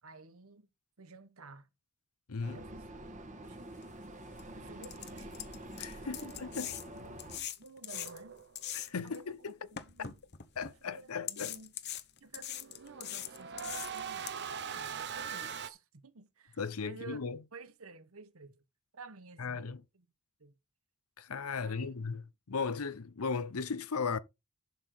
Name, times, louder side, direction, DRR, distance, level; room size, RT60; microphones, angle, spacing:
voice 1, 0.0-0.7 1.0-1.7 2.5-2.9 3.4-3.6 4.6-5.3 6.0-8.4 9.0-10.1 10.6-11.7 12.2-17.2 17.5-18.6 18.9-20.1 20.4-20.5 21.6-22.1, right 3 dB, 75° right, 1.2 m, -53 dB
Vehicle, 2.4-7.4, right 1 dB, 35° right, 1.6 m, -47 dB
sound 1, 3.8-3.9 4.4-4.5 4.8-9.2 9.8-10.7 11.3-14.3, left 11 dB, 50° left, 0.9 m, -41 dB
voice 2, 5.8-6.7 8.7-9.4 10.6-11.5 16.6-17.4 19.4-19.8 21.2-22.2 22.5-24.2, left 5 dB, 85° left, 0.8 m, -36 dB
sound 2, 7.9-8.8 12.6-15.7, right 7 dB, 50° right, 0.9 m, -41 dB
11.0 x 3.8 x 6.5 m
head